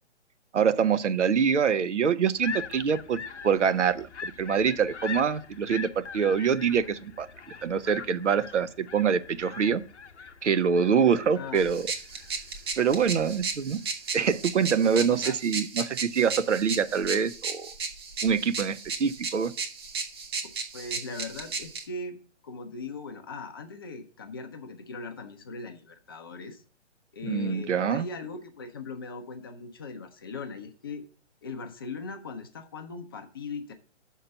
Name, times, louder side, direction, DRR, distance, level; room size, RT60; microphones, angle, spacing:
voice 1, 0.5-7.3 7.6-9.8 10.4-11.9 12.8-13.8 14.1-17.7 18.2-19.5 27.2-28.1, right 7 dB, 75° right, 14 dB, 0.7 m, -25 dB
sound 1, 2.4-13.9, left 6 dB, 70° left, 0.8 m, -42 dB
voice 2, 11.3-11.7 14.8-15.4 20.7-22.2 22.4-26.6 27.1-31.0 31.4-33.7, left 3 dB, 20° left, 5 dB, 0.5 m, -39 dB
sound 2, 11.6-21.8, right 4 dB, 20° right, 0.6 m, -35 dB
6.5 x 4.6 x 6.7 m, 0.43 s
figure-of-eight pair, 135°, 36 cm